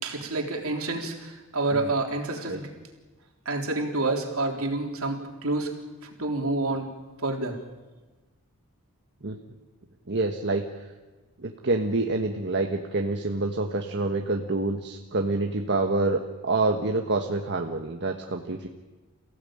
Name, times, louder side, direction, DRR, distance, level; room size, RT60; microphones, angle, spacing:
voice 1, 0.0-2.7 3.5-5.7 6.0-6.9 7.2-7.6, right 2 dB, 70° right, 2 dB, 3.7 m, -28 dB
voice 2, 10.1-10.7 11.4-18.7, right 2 dB, 55° right, 3 dB, 1.5 m, -27 dB
28.5 x 16.5 x 8.9 m, 1.3 s
head